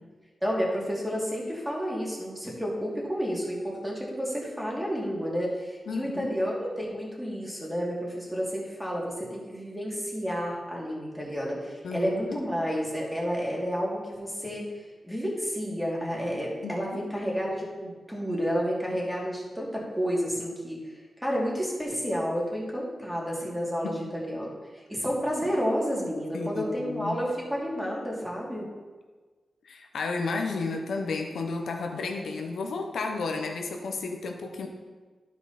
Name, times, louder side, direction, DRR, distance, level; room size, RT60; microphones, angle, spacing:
voice 1, 0.4-14.6 15.0-20.9 21.2-24.5 24.9-28.7, equal, 5° right, -4 dB, 2.5 m, -30 dB
voice 2, 5.9-6.4 11.8-12.4 16.6-17.1 23.8-23.9 26.3-27.2 29.6-34.7, left 4 dB, 90° left, 4 dB, 0.9 m, -32 dB
11.5 x 4.9 x 4.2 m, 1.4 s
cardioid pair, 70°, 0 cm